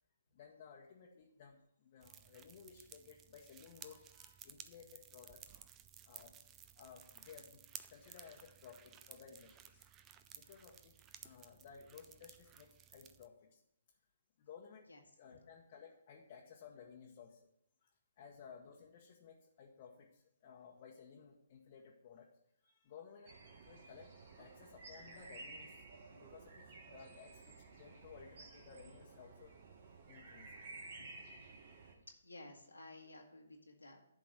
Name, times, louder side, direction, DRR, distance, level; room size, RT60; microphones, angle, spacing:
voice 1, 0.3-5.6 6.0-6.4 6.8-7.6 7.9-9.8 10.3-10.9 11.2-13.6 14.4-14.9 15.2-17.4 17.8-17.9 18.2-22.3 22.6-23.3 23.6-24.1 24.4-29.5 30.1-30.6 30.9-31.0, left 6 dB, 40° left, -1 dB, 1.1 m, -57 dB
sound 1, 2.0-13.3, right 10 dB, 20° right, 0.4 m, -57 dB
sound 2, 23.3-31.9, right 3 dB, 50° right, 1.6 m, -54 dB
voice 2, 30.9-31.6 32.2-34.1, left 2 dB, 90° left, 1 dB, 1.6 m, -56 dB
11.0 x 3.8 x 6.4 m, 0.79 s
figure-of-eight pair, 135°, 0 cm